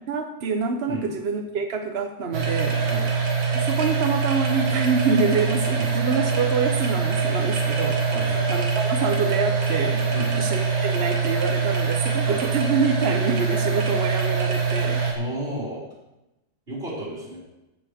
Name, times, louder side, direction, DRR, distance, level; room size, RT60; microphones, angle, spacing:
voice 1, 0.1-2.9 3.5-10.0 10.3-15.0, right 4 dB, 55° right, 5 dB, 0.7 m, -26 dB
sound 1, 2.3-15.1, right 5 dB, 80° right, 2.5 m, -24 dB
voice 2, 8.1-8.4 10.1-10.3 12.2-12.4 15.1-15.8 16.7-17.4, right 1 dB, 30° right, -8 dB, 5.4 m, -32 dB
15.0 x 9.4 x 3.5 m, 0.96 s
omnidirectional pair, 2.0 m